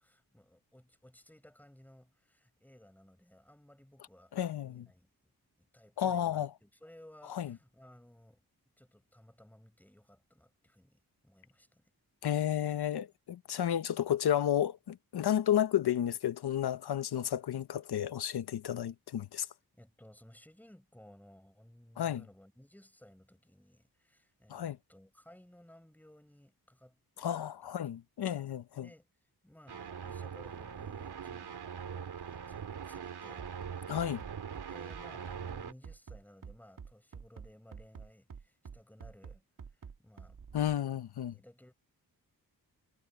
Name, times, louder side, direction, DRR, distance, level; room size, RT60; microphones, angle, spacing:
voice 1, 0.0-4.3 4.6-8.4 8.8-11.9 18.8-19.0 19.7-27.8 28.7-33.5 33.8-34.4 34.7-40.4 41.3-41.7, left 1 dB, 5° left, 7.1 m, -59 dB
voice 2, 4.4-4.9 6.0-6.5 7.3-7.5 12.2-19.5 22.0-22.2 24.5-24.8 27.2-28.9 33.9-34.2 40.5-41.3, left 10 dB, 85° left, 0.9 m, -32 dB
sound 1, 29.7-35.7, right 7 dB, 90° right, 3.1 m, -42 dB
Bass drum, 33.4-40.8, right 6 dB, 55° right, 2.2 m, -48 dB
wide cardioid pair, 165°, 38 cm